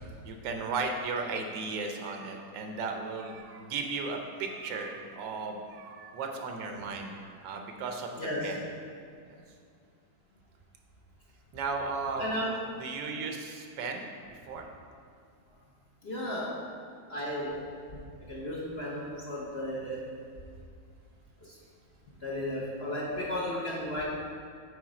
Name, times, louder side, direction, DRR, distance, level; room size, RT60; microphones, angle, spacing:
voice 1, 0.2-8.6 9.3-9.4 11.5-12.3 12.8-14.7, right 4 dB, 85° right, 3 dB, 1.4 m, -36 dB
voice 2, 8.2-8.6 12.2-12.5 16.0-16.6 17.1-17.6 18.3-20.0 21.4-21.6 22.2-24.0, left 1 dB, 50° left, -5 dB, 0.8 m, -34 dB
8.2 x 3.5 x 4.9 m, 2.2 s
omnidirectional pair, 1.9 m